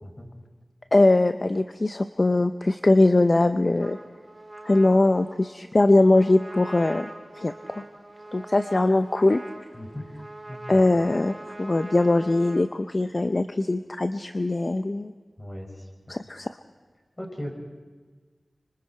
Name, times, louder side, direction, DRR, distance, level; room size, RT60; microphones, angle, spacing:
voice 1, 0.9-4.0 4.6-7.1 7.4-7.8 8.3-9.4 10.7-15.1 16.1-16.5, left 2 dB, 45° left, 9 dB, 0.6 m, -21 dB
Trumpet, 3.8-12.7, right 1 dB, 35° right, 2.0 m, -43 dB
voice 2, 10.5-10.8 15.4-15.9 17.2-17.5, left 1 dB, 25° left, 0 dB, 5.9 m, -37 dB
25.0 x 24.5 x 4.4 m, 1.4 s
wide cardioid pair, 50°, 0 cm